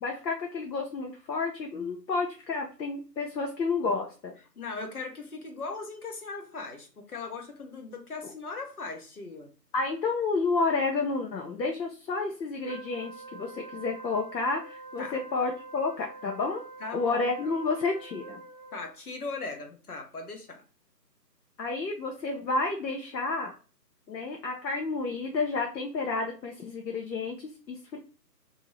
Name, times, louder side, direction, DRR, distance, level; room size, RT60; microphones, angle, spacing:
voice 1, 0.0-4.3 9.7-16.6 16.9-18.4 21.6-23.5 24.1-28.0, left 3 dB, 90° left, 1 dB, 0.7 m, -30 dB
voice 2, 4.6-9.5 15.0-15.2 16.8-17.5 18.7-20.6, left 3 dB, 60° left, 4 dB, 0.9 m, -39 dB
Wind instrument woodwind instrument, 12.6-18.9, right 3 dB, 55° right, 0.7 m, -46 dB
2.6 x 2.0 x 3.0 m, 0.37 s
figure-of-eight pair, 170°, 50 cm